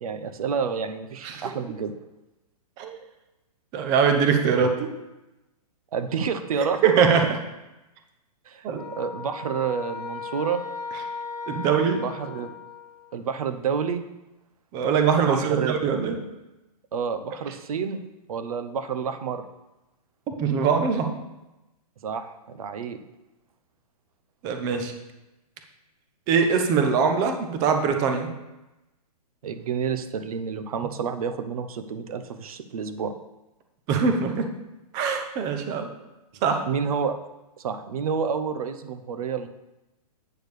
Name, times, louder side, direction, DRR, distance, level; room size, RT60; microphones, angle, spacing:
voice 1, 0.0-1.9 5.9-6.8 8.5-10.6 11.9-12.5 13.1-14.0 15.2-15.8 16.9-18.0 18.3-19.4 22.0-23.0 29.4-33.1 36.7-37.2 37.6-39.5, right 6 dB, 65° right, 9 dB, 0.8 m, -29 dB
voice 2, 3.7-4.9 6.8-7.4 8.6-8.9 11.5-12.0 14.7-16.2 20.4-21.1 24.4-24.9 26.3-28.3 33.9-34.5 34.9-35.9 36.4-36.6, right 6 dB, 20° right, 5 dB, 0.6 m, -22 dB
sound 1, 8.8-13.2, left 4 dB, 85° left, 1.2 m, -37 dB
8.6 x 6.3 x 3.2 m, 0.99 s
hypercardioid pair, 160°, 20 cm